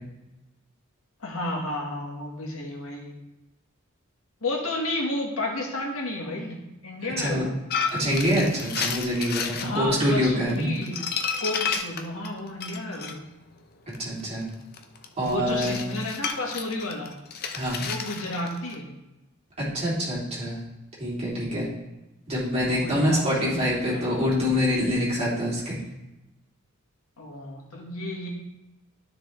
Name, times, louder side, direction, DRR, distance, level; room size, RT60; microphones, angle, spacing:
voice 1, 1.2-3.1 4.4-6.6 6.8-7.5 9.6-11.0 11.4-13.2 15.2-17.1 17.8-18.9 22.6-24.3 27.2-28.3, left 1 dB, 70° left, -1 dB, 1.8 m, -32 dB
sound 1, 7.7-9.7 10.3-13.1 13.9-18.7, left 6 dB, 45° left, 0.7 m, -31 dB
voice 2, 7.9-10.7 14.0-14.4 15.2-15.8 17.5-17.8 19.7-20.6 21.0-21.7 22.3-25.8, equal, 30° right, -7 dB, 3.2 m, -25 dB
12.5 x 4.9 x 3.4 m, 0.97 s
head